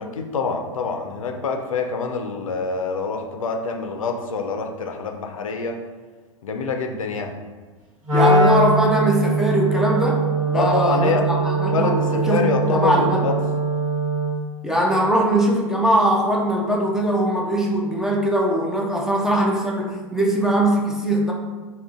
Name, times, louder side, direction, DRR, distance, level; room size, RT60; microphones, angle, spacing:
voice 1, 0.1-5.8 6.4-7.3 10.5-11.2 11.7-13.3, left 4 dB, 80° left, 4 dB, 0.4 m, -25 dB
voice 2, 8.1-13.3 14.6-21.3, right 1 dB, 5° right, -2 dB, 0.3 m, -21 dB
Wind instrument woodwind instrument, 8.1-14.4, right 2 dB, 80° right, 1.1 m, -21 dB
3.6 x 2.2 x 2.3 m, 1.4 s
figure-of-eight pair, 95°, 17 cm